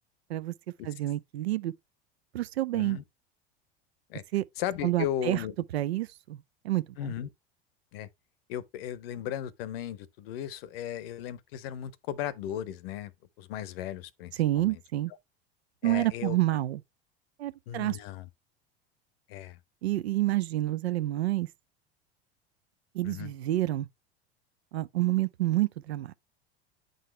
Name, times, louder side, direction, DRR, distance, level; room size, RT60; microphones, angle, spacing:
voice 1, 0.8-1.7 2.3-3.0 4.3-4.4 4.8-5.4 5.7-7.1 14.4-15.1 15.8-16.8 17.4-18.0 19.8-21.5 22.9-23.9 24.7-26.1, right 15 dB, 80° right, 0.5 m, -28 dB
voice 2, 4.6-5.5 7.0-7.3 7.9-8.1 8.5-13.1 13.4-14.8 15.8-16.4 17.7-18.3 19.3-19.6 23.0-23.3, left 11 dB, 65° left, 0.7 m, -36 dB
9.1 x 4.0 x 3.1 m
hypercardioid pair, 80°, 31 cm